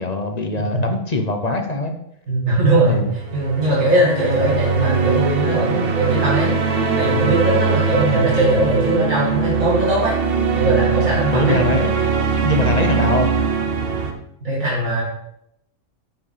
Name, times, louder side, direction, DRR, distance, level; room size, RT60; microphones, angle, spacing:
voice 1, 0.0-1.9 2.8-3.1 8.0-8.3 11.3-11.9 12.4-13.3, left 2 dB, 35° left, 5 dB, 0.8 m, -22 dB
voice 2, 2.3-3.0 3.3-6.5 7.0-10.1 10.5-11.6 14.4-15.0, right 2 dB, 85° right, -6 dB, 2.8 m, -19 dB
sound 1, 3.1-14.1, right 5 dB, 50° right, 1.0 m, -21 dB
9.1 x 5.2 x 4.9 m, 0.77 s
omnidirectional pair, 1.4 m